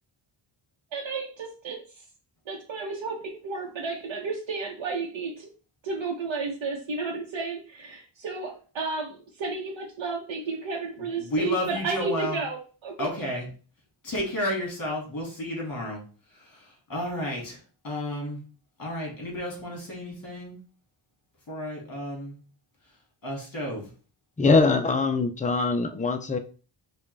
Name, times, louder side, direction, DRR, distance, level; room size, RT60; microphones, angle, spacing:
voice 1, 0.9-2.0 2.5-5.5 5.8-13.1, right 4 dB, 70° right, -2 dB, 0.9 m, -32 dB
voice 2, 11.0-12.4 13.0-13.5 14.0-16.0 16.3-18.4 18.8-20.6 21.5-22.4 23.2-23.9, equal, 45° left, -1 dB, 2.1 m, -32 dB
voice 3, 24.4-26.4, left 3 dB, 20° left, 6 dB, 0.3 m, -22 dB
5.2 x 2.4 x 3.3 m, 0.38 s
wide cardioid pair, 135°, 49 cm